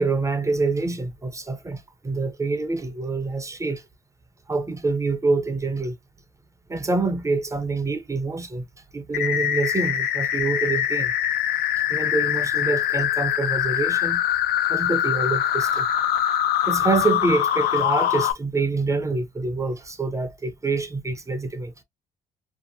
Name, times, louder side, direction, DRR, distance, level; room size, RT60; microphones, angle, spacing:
voice 1, 0.0-3.8 4.5-6.0 6.7-8.6 8.9-11.1 11.9-14.2 14.7-15.9 16.7-21.7, right 3 dB, 20° right, 0.5 m, -26 dB
sound 1, 9.1-18.3, left 11 dB, 65° left, 0.5 m, -23 dB
2.7 x 2.4 x 2.6 m
cardioid pair, 110°, 17 cm